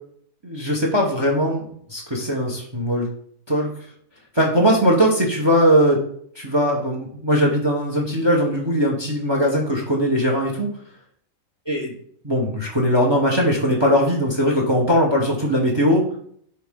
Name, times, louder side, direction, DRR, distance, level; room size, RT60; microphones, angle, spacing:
voice 1, 0.4-3.1 3.5-3.7 4.3-6.0 6.3-10.7 11.7-11.9 12.2-16.1, equal, 20° right, 1 dB, 1.1 m, -20 dB
10.5 x 3.6 x 3.7 m, 0.62 s
omnidirectional pair, 1.5 m